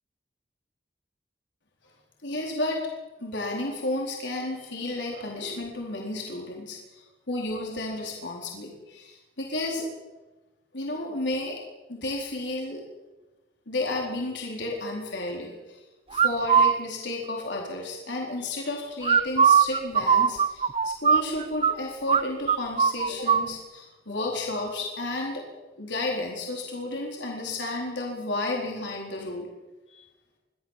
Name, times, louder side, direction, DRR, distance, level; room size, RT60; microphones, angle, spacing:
voice 1, 2.2-2.8 3.2-9.9 10.7-11.6 11.9-12.8 13.7-15.8 16.1-25.4 25.8-29.5 29.9-30.1, left 2 dB, 85° left, -1 dB, 4.2 m, -32 dB
sound 1, 16.1-16.7 19.0-21.7 22.1-22.2 22.5-23.5, right 6 dB, 30° right, 0.6 m, -20 dB
24.5 x 15.0 x 7.4 m, 1.2 s
head